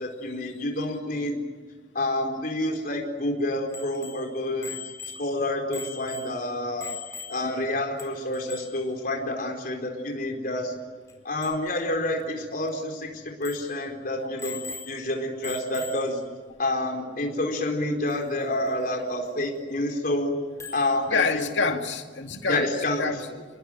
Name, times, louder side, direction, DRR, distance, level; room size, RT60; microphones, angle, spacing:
voice 1, 0.0-1.4 1.9-4.8 5.2-6.9 7.3-10.8 11.2-16.2 16.6-20.4 20.7-21.8 22.5-23.1, left 1 dB, 50° left, 2 dB, 4.5 m, -28 dB
Bicycle bell, 3.7-7.7 8.0-8.1 8.3-8.9 11.1-11.2 11.4-11.6 12.2-12.3 12.7-12.8 13.4-13.8 14.4-15.1 15.4-16.2 18.1-18.2 20.6-21.0, left 5 dB, 15° left, 4.4 m, -41 dB
voice 2, 21.1-23.4, left 4 dB, 85° left, 5 dB, 2.4 m, -28 dB
29.5 x 20.5 x 9.1 m, 1.4 s
head